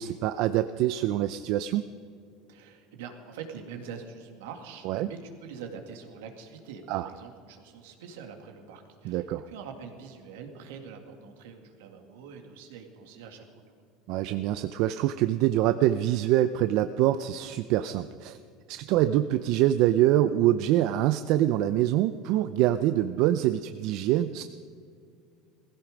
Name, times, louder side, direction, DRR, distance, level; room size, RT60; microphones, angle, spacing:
voice 1, 0.0-1.8 4.8-5.1 6.9-7.1 9.0-9.4 14.1-18.4 18.7-24.4, right 13 dB, 65° right, 11 dB, 0.5 m, -25 dB
voice 2, 2.5-13.5, right 6 dB, 85° right, 4 dB, 2.1 m, -44 dB
16.5 x 15.5 x 5.1 m, 2.4 s
supercardioid pair, 110°, 0 cm